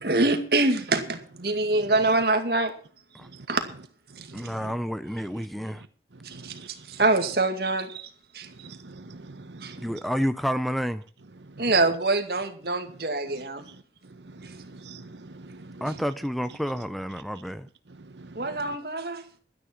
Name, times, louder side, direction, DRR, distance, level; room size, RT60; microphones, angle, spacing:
voice 1, 0.0-2.7 3.5-3.6 6.2-8.1 8.3-8.5 9.6-9.7 11.6-13.6 18.4-19.2, right 2 dB, 60° right, 2.2 m, -25 dB
voice 2, 4.3-5.8 9.8-11.0 15.8-17.7, equal, ahead, 0.5 m, -29 dB
voice 3, 8.6-9.8 14.8-15.1 15.3-15.8 18.2-18.3, right 3 dB, 80° right, 1.0 m, -44 dB
12.5 x 10.0 x 5.9 m
head